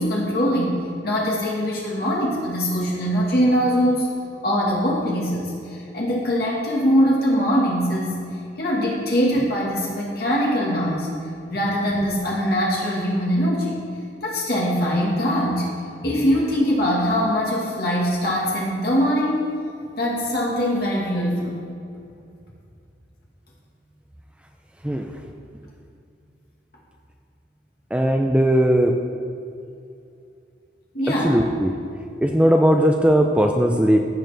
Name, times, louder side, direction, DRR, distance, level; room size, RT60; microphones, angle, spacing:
voice 1, 0.0-4.1 4.4-8.2 8.6-11.1 11.5-13.8 14.2-15.7 16.0-19.5 20.0-21.6 30.9-31.4, equal, 55° left, -4 dB, 1.6 m, -22 dB
voice 2, 27.9-29.0 31.2-31.7 32.2-34.0, equal, 5° right, 3 dB, 0.4 m, -18 dB
16.0 x 6.6 x 3.3 m, 2.5 s
head